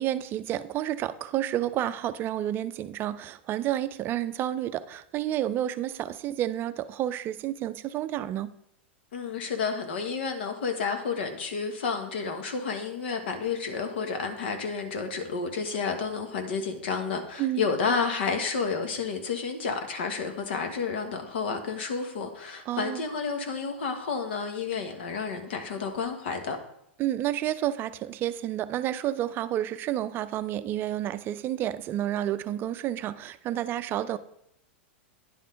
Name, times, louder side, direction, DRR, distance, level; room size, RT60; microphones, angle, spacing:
voice 1, 0.0-8.5 17.4-17.6 22.7-23.0 27.0-34.2, right 12 dB, 35° right, 0.4 m, -30 dB
voice 2, 9.1-26.6, left 5 dB, 65° left, 1.3 m, -30 dB
10.0 x 5.5 x 3.8 m
hypercardioid pair, 100°, 6 cm